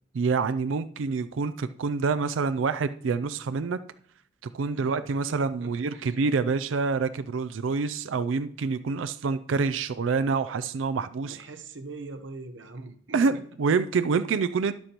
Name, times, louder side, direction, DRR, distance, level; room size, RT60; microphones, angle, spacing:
voice 1, 0.1-3.8 4.4-11.4 13.1-14.7, right 4 dB, 85° right, 13 dB, 0.4 m, -27 dB
voice 2, 4.7-5.0 5.3-6.1 11.2-13.5, right 3 dB, 70° right, 6 dB, 1.0 m, -43 dB
13.0 x 11.5 x 2.9 m, 0.62 s
head